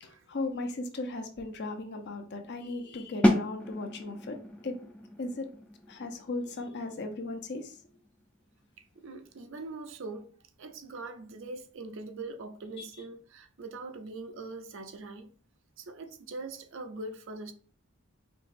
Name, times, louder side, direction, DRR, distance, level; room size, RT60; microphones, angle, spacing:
voice 1, 0.0-4.4 4.6-4.8 5.2-5.5 5.9-7.8, left 2 dB, 50° left, 0.6 m, -36 dB
sound 1, 3.2-8.9, left 1 dB, 5° left, 0.4 m, -32 dB
voice 2, 8.8-10.3 10.6-15.3 15.8-17.5, right 3 dB, 55° right, 0.5 m, -42 dB
4.6 x 2.9 x 2.6 m
head